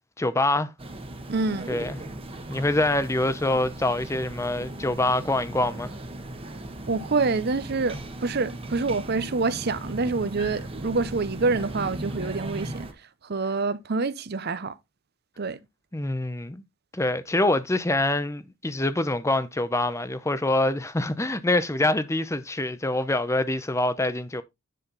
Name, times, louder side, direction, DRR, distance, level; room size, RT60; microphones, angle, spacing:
voice 1, 0.2-0.7 1.7-2.0 2.5-5.9 15.9-16.6 16.9-24.4, left 2 dB, 15° left, 0.6 m, -25 dB
sound 1, 0.8-12.9, right 1 dB, 25° right, 1.1 m, -37 dB
voice 2, 1.3-1.7 6.9-12.9 13.2-14.7 15.4-15.6, right 3 dB, 45° right, 0.6 m, -27 dB
10.0 x 4.2 x 3.9 m
head